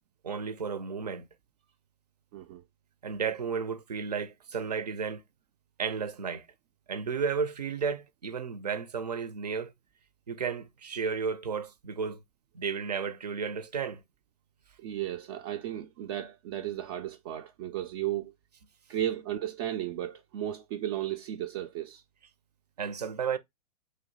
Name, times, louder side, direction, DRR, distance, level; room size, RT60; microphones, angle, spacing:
voice 1, 0.2-1.3 3.0-5.2 5.8-6.5 6.9-9.7 10.3-12.2 12.5-14.0 22.8-23.4, right 6 dB, 70° right, 0.7 m, -33 dB
voice 2, 2.3-2.6 14.8-18.3 18.9-22.0, right 12 dB, 35° right, 0.4 m, -34 dB
3.2 x 2.7 x 3.8 m
figure-of-eight pair, 105°, 21 cm